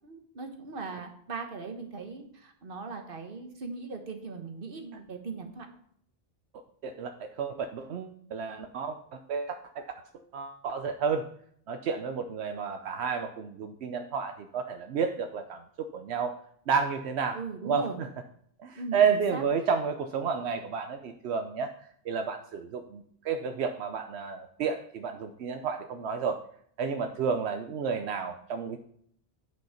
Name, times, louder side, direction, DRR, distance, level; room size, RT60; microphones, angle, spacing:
voice 1, 0.0-5.7 17.3-18.0 18.7-19.0 19.3-19.4, right 4 dB, 55° right, 4 dB, 1.4 m, -39 dB
voice 2, 6.8-9.8 10.1-11.3 11.7-15.6 15.9-16.4 16.7-17.4 17.6-18.1 18.6-21.7 22.0-26.4 26.8-28.8, right 6 dB, 80° right, 6 dB, 0.9 m, -31 dB
9.2 x 5.5 x 5.7 m, 0.65 s
omnidirectional pair, 1.1 m